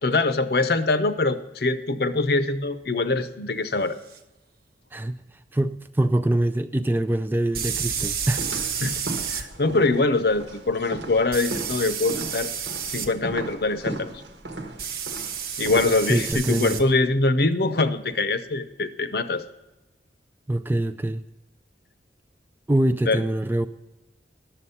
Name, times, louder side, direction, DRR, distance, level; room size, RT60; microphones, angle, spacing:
voice 1, 0.0-4.0 8.8-9.0 9.3-12.5 12.9-14.1 15.6-19.4 23.1-23.2, left 3 dB, 60° left, 11 dB, 0.7 m, -23 dB
sound 1, 4.1-4.2 7.5-9.4 11.3-13.1 14.8-16.8, right 7 dB, 55° right, 0.9 m, -30 dB
voice 2, 5.5-8.4 16.1-16.8 20.5-21.2 22.7-23.7, right 1 dB, 10° right, 9 dB, 0.3 m, -24 dB
sound 2, 8.3-16.3, right 2 dB, 80° right, 1.4 m, -36 dB
11.0 x 7.3 x 5.6 m, 1.0 s
head